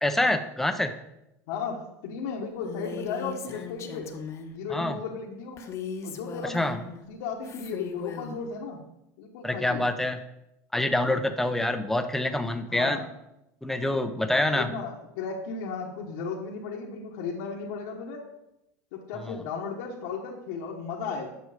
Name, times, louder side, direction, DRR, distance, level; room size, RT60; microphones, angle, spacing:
voice 1, 0.0-0.9 4.7-4.9 6.5-6.8 9.4-10.2 10.7-13.0 13.6-14.7 19.3-19.4, left 1 dB, 5° left, 8 dB, 0.8 m, -26 dB
voice 2, 1.5-4.1 4.5-5.6 6.0-8.8 9.2-9.9 12.7-13.1 14.3-18.2 18.9-21.3, left 5 dB, 75° left, -3 dB, 1.4 m, -35 dB
Female speech woman speaking, 2.6-4.6 5.6-7.0 7.4-8.4, left 5 dB, 35° left, 1.0 m, -38 dB
9.4 x 6.3 x 5.1 m, 0.88 s
supercardioid pair, 125°, 8 cm